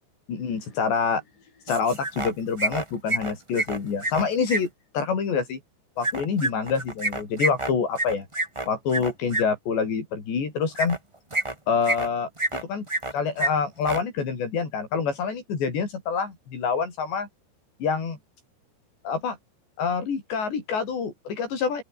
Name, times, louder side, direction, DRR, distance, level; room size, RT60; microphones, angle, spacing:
voice 1, 0.3-1.2 1.7-4.7 4.9-5.6 6.0-8.3 8.7-11.0 11.7-12.9 13.1-17.3 17.8-18.2 19.0-19.4 19.8-21.8, left 5 dB, 80° left, 7.6 m, -26 dB
sound 1, 1.7-2.3 2.6-4.6 6.0-9.4 10.7-11.0 11.3-12.1 12.4-13.1 13.4-13.5 13.8-14.0, right 2 dB, 15° right, 1.0 m, -27 dB
open air
omnidirectional pair, 4.9 m